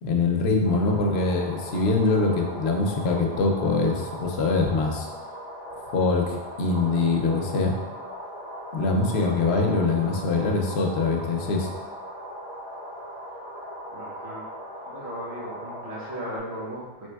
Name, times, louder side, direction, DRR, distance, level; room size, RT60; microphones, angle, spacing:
voice 1, 0.0-5.1 5.9-7.7 8.7-11.7, left 3 dB, 80° left, 2 dB, 0.8 m, -23 dB
sound 1, 0.6-16.4, equal, 20° left, 0.9 m, -39 dB
voice 2, 13.9-14.4 14.8-17.1, equal, 80° right, -5 dB, 1.2 m, -36 dB
4.3 x 3.1 x 2.2 m, 1.2 s
omnidirectional pair, 1.1 m